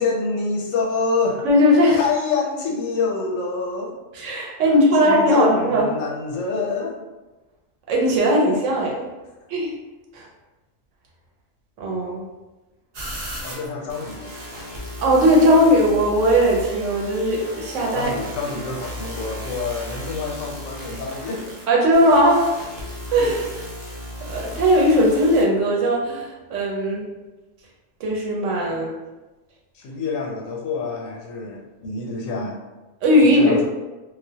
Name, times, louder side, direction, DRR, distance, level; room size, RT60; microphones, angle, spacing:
voice 1, 0.0-1.5 2.0-3.9 4.6-7.0 13.4-14.3 17.8-21.5 23.2-23.4 28.7-28.8 29.7-32.6 33.2-33.7, left 4 dB, 85° left, -1 dB, 1.0 m, -27 dB
voice 2, 1.4-2.0 4.2-5.9 7.9-9.1 9.5-9.7 10.1-10.3 11.8-12.3 15.0-18.1 21.7-22.5 23.1-23.4 24.3-27.0 28.0-28.9 33.0-33.7, equal, 75° right, -2 dB, 0.9 m, -18 dB
sound 1, 12.9-25.4, equal, 55° right, 0.4 m, -35 dB
2.3 x 2.0 x 2.7 m, 1.1 s
omnidirectional pair, 1.4 m